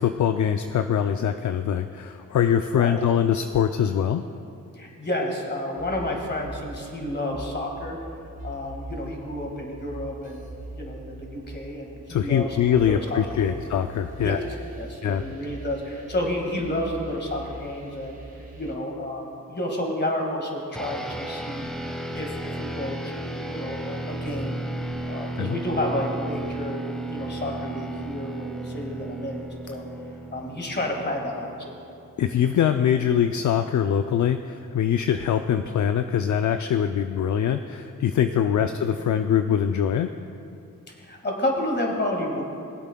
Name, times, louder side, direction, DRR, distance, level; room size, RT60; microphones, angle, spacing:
voice 1, 0.0-4.2 12.1-14.4 15.0-15.2 25.4-25.6 32.2-40.1, left 9 dB, 60° left, 8 dB, 0.5 m, -23 dB
voice 2, 4.7-8.0 8.4-12.6 12.9-13.6 14.2-14.4 14.8-18.1 18.6-21.7 22.1-24.6 25.0-29.8 30.3-31.8 38.6-38.7 40.9-42.4, left 1 dB, 30° left, 1 dB, 1.9 m, -30 dB
sound 1, 5.8-18.7, right 1 dB, 25° right, 1.9 m, -41 dB
sound 2, 20.7-32.4, right 1 dB, ahead, 1.1 m, -34 dB
20.0 x 8.1 x 2.3 m, 2.6 s
cardioid pair, 65°, 34 cm